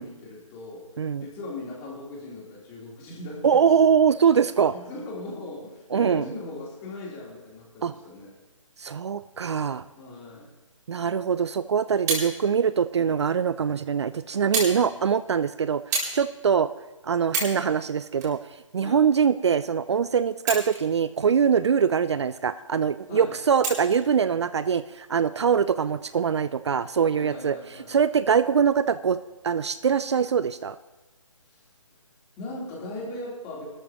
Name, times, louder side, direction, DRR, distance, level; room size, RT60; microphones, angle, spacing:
voice 1, 0.0-0.9 1.2-3.7 4.6-8.3 10.0-10.5 14.7-15.1 18.8-19.1 23.1-23.4 27.1-28.0 32.4-33.6, left 2 dB, 20° left, -4 dB, 3.6 m, -39 dB
voice 2, 3.4-4.7 5.9-6.2 7.8-7.9 8.8-9.8 10.9-15.8 16.1-16.7 17.0-18.4 18.7-27.6 27.9-29.2 29.4-30.8, right 7 dB, 55° right, 15 dB, 0.4 m, -23 dB
sound 1, 12.0-12.3 13.2-13.3 14.5-14.8 15.1-15.3 15.9-16.2 16.7-16.8 17.2-17.6 18.1-19.2 20.3-21.0 21.5-21.6 23.6-24.0 24.9-25.1, right 3 dB, 35° right, 4.8 m, -29 dB
25.0 x 13.0 x 3.0 m, 1.1 s
figure-of-eight pair, 150°, 17 cm